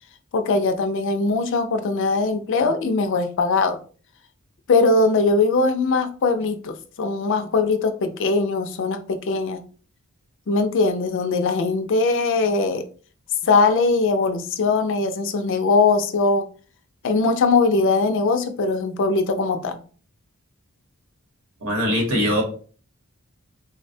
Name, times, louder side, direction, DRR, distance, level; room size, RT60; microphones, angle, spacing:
voice 1, 0.3-3.8 4.7-9.6 10.5-12.8 13.4-16.5 17.0-19.8, left 3 dB, 55° left, 0.4 m, -21 dB
voice 2, 21.6-22.4, equal, 75° right, 1.0 m, -21 dB
3.9 x 2.1 x 2.6 m
head